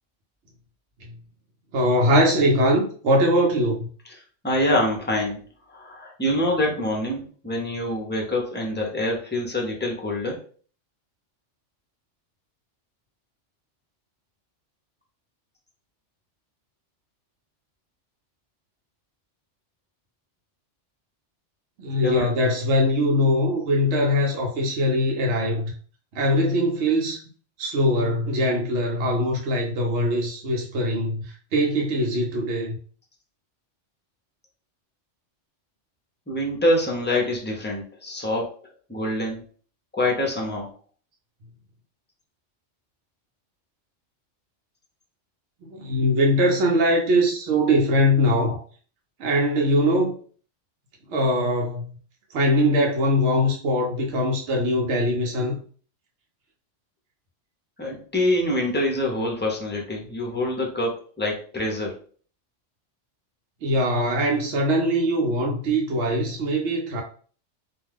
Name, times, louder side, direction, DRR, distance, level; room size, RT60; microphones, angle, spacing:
voice 1, 1.7-3.9 21.8-25.7 26.1-27.2 27.6-32.8 45.6-48.6 49.2-50.1 51.1-51.8 52.3-55.6 63.6-67.0, equal, 70° right, 0.9 m, -22 dB
voice 2, 4.1-10.4 22.0-22.3 36.3-38.6 38.9-39.4 39.9-40.7 57.8-62.0, left 1 dB, 15° left, 0.4 m, -25 dB
2.3 x 2.3 x 3.3 m
omnidirectional pair, 1.2 m